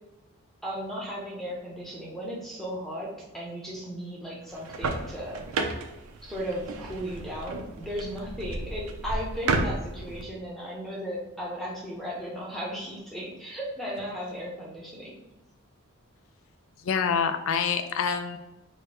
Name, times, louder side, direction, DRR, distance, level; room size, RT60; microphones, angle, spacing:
voice 1, 0.6-5.5 6.2-15.2, equal, ahead, -5 dB, 0.8 m, -36 dB
sound 1, 4.5-10.2, right 3 dB, 80° right, 0.5 m, -32 dB
voice 2, 16.8-18.4, left 6 dB, 70° left, 9 dB, 0.4 m, -26 dB
5.0 x 2.2 x 4.2 m, 0.94 s
head